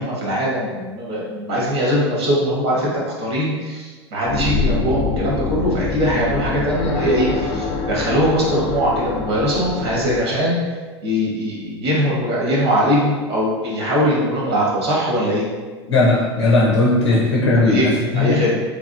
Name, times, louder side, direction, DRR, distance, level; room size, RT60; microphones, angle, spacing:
voice 1, 0.0-10.6 11.0-15.5 17.6-18.6, equal, 70° right, -5 dB, 1.4 m, -21 dB
sound 1, 4.2-10.2, left 4 dB, 35° left, 0.6 m, -25 dB
voice 2, 15.9-18.4, left 2 dB, 85° left, -3 dB, 0.6 m, -17 dB
3.4 x 3.3 x 2.6 m, 1.4 s
hypercardioid pair, 90°, 14 cm